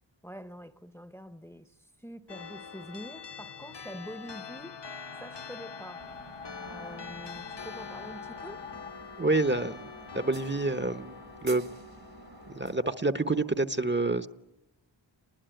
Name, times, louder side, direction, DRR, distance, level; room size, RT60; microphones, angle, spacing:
voice 1, 0.2-4.9 5.2-6.1 6.6-8.7, equal, 5° left, 0.9 m, -45 dB
sound 1, 2.3-13.1, left 5 dB, 60° left, 1.4 m, -45 dB
sound 2, 3.3-8.9, left 7 dB, 80° left, 1.1 m, -48 dB
sound 3, 6.0-12.7, right 4 dB, 50° right, 1.4 m, -51 dB
voice 2, 9.2-9.9 10.1-11.1 11.4-11.6 12.5-14.3, right 2 dB, 25° right, 0.9 m, -27 dB
29.0 x 20.5 x 9.0 m
wide cardioid pair, 65°, 46 cm